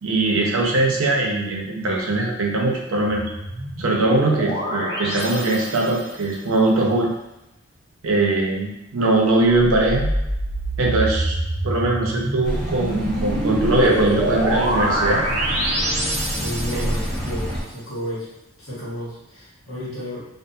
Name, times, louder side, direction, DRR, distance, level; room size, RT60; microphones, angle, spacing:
voice 1, 0.0-3.3 3.8-7.1 8.0-10.1 10.8-11.4 11.6-15.2 16.7-16.9, right 2 dB, 75° right, -1 dB, 0.6 m, -21 dB
sound 1, 3.1-6.2 9.5-17.2, right 1 dB, 20° right, 1.0 m, -26 dB
sound 2, 12.4-17.6, equal, 10° left, 0.7 m, -28 dB
voice 2, 16.3-18.3 18.6-20.2, equal, 80° left, -8 dB, 1.2 m, -32 dB
2.4 x 2.3 x 2.6 m, 0.90 s
head